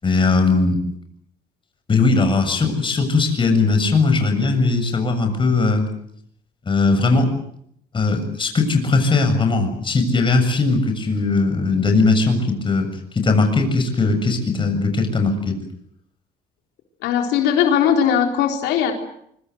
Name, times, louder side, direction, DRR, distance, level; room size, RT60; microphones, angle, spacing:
voice 1, 0.0-0.8 1.9-5.9 6.7-7.3 7.9-12.9 13.2-15.6, left 3 dB, 30° left, 6 dB, 7.2 m, -19 dB
voice 2, 17.0-18.9, left 8 dB, 90° left, 3 dB, 3.8 m, -18 dB
25.0 x 24.0 x 7.9 m, 0.70 s
cardioid pair, 110°, 17 cm